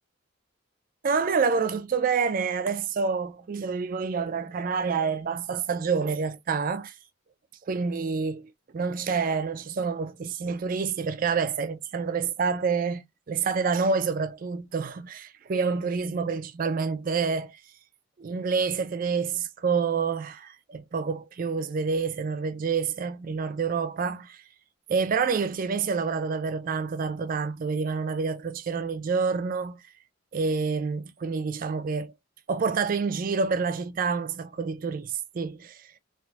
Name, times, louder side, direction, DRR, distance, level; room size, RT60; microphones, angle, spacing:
voice 1, 1.0-6.9 7.7-17.6 18.2-24.4 24.9-29.8 30.3-32.1 32.5-35.8, right 5 dB, 45° right, 0.3 m, -28 dB
3.4 x 2.5 x 2.3 m
head